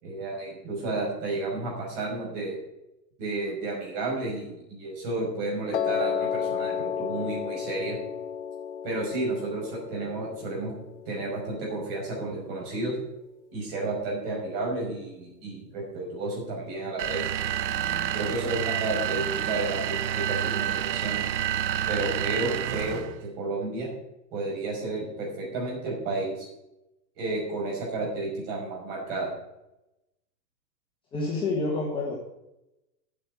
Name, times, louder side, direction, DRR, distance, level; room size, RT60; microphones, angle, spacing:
voice 1, 0.0-2.5 3.2-8.0 8.8-10.7 11.1-12.9 13.5-17.3 18.1-21.2 21.9-23.9 24.3-26.5 27.2-29.3, right 2 dB, 35° right, -2 dB, 5.8 m, -32 dB
Piano, 5.7-11.9, left 8 dB, 45° left, 0.5 m, -32 dB
sound 1, 17.0-23.2, right 10 dB, 85° right, 0.9 m, -29 dB
voice 2, 31.1-32.1, left 3 dB, 10° left, -4 dB, 1.4 m, -28 dB
8.8 x 8.7 x 9.5 m, 0.91 s
hypercardioid pair, 170°, 50 cm